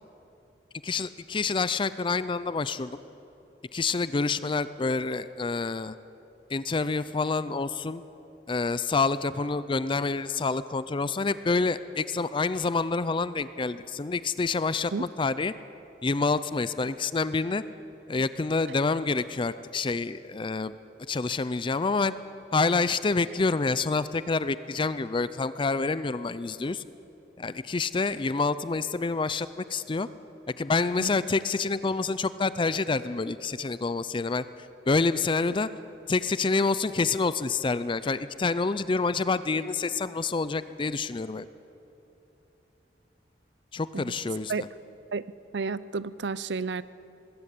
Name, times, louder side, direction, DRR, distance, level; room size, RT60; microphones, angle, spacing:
voice 1, 0.8-3.0 3.7-5.9 6.5-8.0 8.5-15.5 16.0-17.6 18.1-20.7 21.1-22.1 22.5-26.8 27.4-30.1 30.6-34.4 34.9-35.7 36.1-41.5 43.7-44.7, left 4 dB, 30° left, 15 dB, 0.4 m, -27 dB
voice 2, 45.5-46.8, right 4 dB, 70° right, 18 dB, 0.5 m, -31 dB
20.5 x 16.5 x 8.3 m, 2.9 s
head